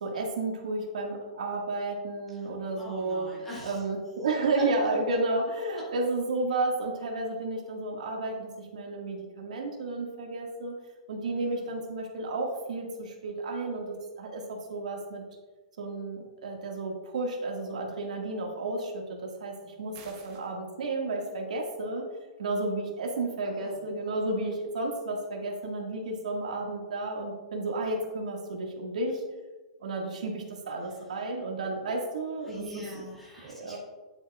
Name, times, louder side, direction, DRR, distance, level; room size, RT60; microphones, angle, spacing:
voice 1, 0.0-3.3 3.6-10.8 11.1-15.2 15.8-22.1 22.4-29.2 29.8-32.8 33.4-33.8, right 2 dB, 85° right, 0 dB, 1.9 m, -32 dB
voice 2, 2.3-3.8 11.3-11.7 23.6-23.9 30.8-31.0 32.4-33.8, equal, 5° left, -7 dB, 1.9 m, -45 dB
sound 1, 19.9-20.5, right 6 dB, 25° right, 0.9 m, -51 dB
10.0 x 7.7 x 2.5 m, 1.3 s
hypercardioid pair, 175°, 4 cm